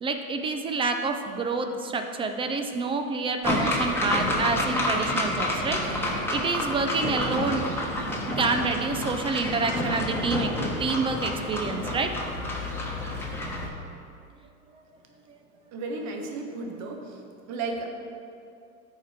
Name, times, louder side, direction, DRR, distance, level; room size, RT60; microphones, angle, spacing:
voice 1, 0.0-7.7 8.4-12.1 15.3-15.4, right 4 dB, 15° right, 6 dB, 0.4 m, -28 dB
sound 1, 3.4-13.7, left 1 dB, 5° left, 1.3 m, -29 dB
voice 2, 15.7-17.2 17.5-17.9, right 3 dB, 40° right, 2 dB, 1.2 m, -33 dB
13.5 x 4.8 x 3.4 m, 2.5 s
hypercardioid pair, 105°, 44 cm